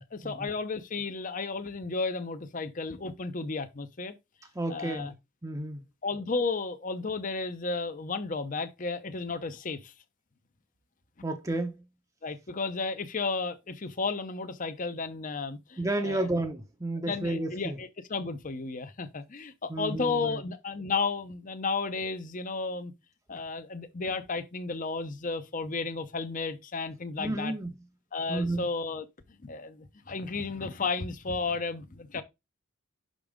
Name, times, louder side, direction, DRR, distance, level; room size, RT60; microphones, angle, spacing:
voice 1, 0.1-4.1 4.7-5.1 6.0-9.9 12.2-16.3 17.0-22.9 23.3-27.5 28.1-29.1 29.4-32.2, left 4 dB, 40° left, 0.7 m, -33 dB
voice 2, 4.5-5.1 5.4-5.8 11.2-11.8 15.8-17.8 19.7-20.4 27.2-27.8 28.3-28.6, right 2 dB, 15° right, 0.7 m, -31 dB
6.1 x 5.2 x 3.6 m
head